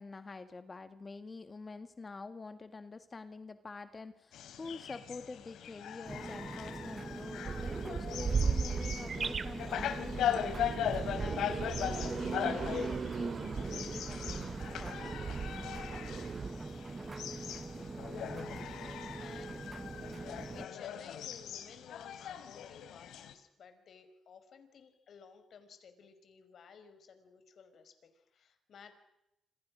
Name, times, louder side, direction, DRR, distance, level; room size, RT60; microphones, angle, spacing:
voice 1, 0.0-15.2, left 4 dB, 30° left, 10 dB, 1.9 m, -47 dB
sound 1, 4.3-23.3, left 9 dB, 75° left, 3.1 m, -40 dB
sound 2, 6.0-20.7, right 3 dB, 25° right, 0.9 m, -44 dB
sound 3, 7.5-16.5, right 5 dB, 45° right, 2.2 m, -37 dB
voice 2, 18.5-19.6 19.9-28.9, left 6 dB, 60° left, 9 dB, 5.2 m, -56 dB
29.0 x 27.0 x 6.4 m, 0.84 s
cardioid pair, 90°, 0 cm